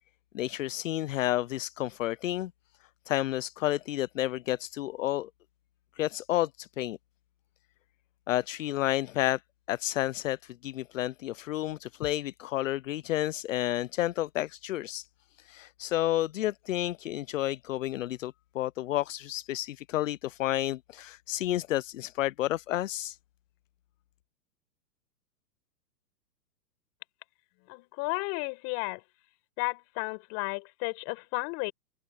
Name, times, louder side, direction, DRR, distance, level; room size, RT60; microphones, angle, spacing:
voice 1, 0.3-2.5 3.1-5.3 6.0-7.0 8.3-9.4 9.7-15.1 15.4-23.2, left 14 dB, 50° left, 0.5 m, -31 dB
voice 2, 27.7-29.0 29.6-31.7, left 30 dB, 30° left, 5.8 m, -33 dB
hypercardioid pair, 155°, 50 cm